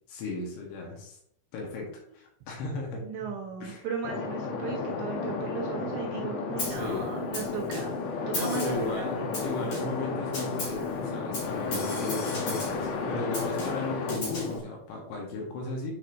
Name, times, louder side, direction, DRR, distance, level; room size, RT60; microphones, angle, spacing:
voice 1, 0.1-1.2 1.5-1.9 2.1-3.0 3.6-3.9 6.5-7.1 8.3-15.9, left 3 dB, 70° left, 0 dB, 3.2 m, -35 dB
voice 2, 3.0-9.5, right 5 dB, 75° right, -1 dB, 2.8 m, -36 dB
sound 1, 4.0-14.6, left 4 dB, 85° left, 2.4 m, -33 dB
Snare drum, 6.6-6.9 7.3-8.0 8.3-8.9 9.3-10.0 10.3-10.9 11.3-12.9 13.3-14.6, left 1 dB, 50° left, 1.9 m, -36 dB
9.4 x 4.1 x 2.6 m, 0.70 s
omnidirectional pair, 5.8 m